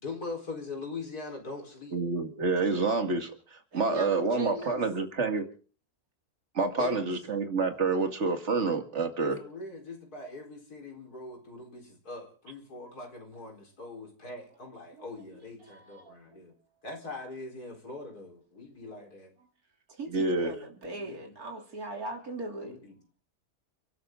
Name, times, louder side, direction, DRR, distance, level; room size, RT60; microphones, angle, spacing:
voice 1, 0.0-2.0 3.9-5.0 6.8-7.1 9.2-16.5 16.8-19.3 21.0-21.3 22.6-23.0, left 3 dB, 80° left, 2 dB, 4.8 m, -42 dB
voice 2, 1.9-3.3 3.7-5.5 6.5-9.4 20.1-20.5, right 3 dB, 50° right, 6 dB, 2.3 m, -28 dB
voice 3, 3.7-4.8 15.0-15.3 15.6-16.4 19.4-19.5 19.9-22.8, right 2 dB, 70° right, 2 dB, 3.6 m, -40 dB
30.0 x 12.5 x 3.8 m, 0.41 s
omnidirectional pair, 1.6 m